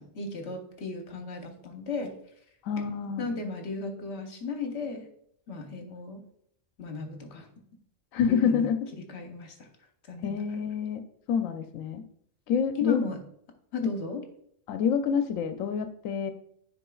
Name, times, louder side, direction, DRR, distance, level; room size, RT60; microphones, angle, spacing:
voice 1, 0.0-2.1 3.2-5.1 5.5-6.2 6.8-7.5 8.3-8.7 9.1-9.7 10.1-10.4 12.7-13.2 13.7-14.2, left 4 dB, 60° left, 4 dB, 1.1 m, -35 dB
voice 2, 2.6-3.4 8.1-8.8 10.2-11.0 11.3-12.0 12.5-13.0 14.7-16.3, left 7 dB, 80° left, 8 dB, 1.0 m, -27 dB
9.9 x 4.4 x 2.3 m, 0.69 s
omnidirectional pair, 1.4 m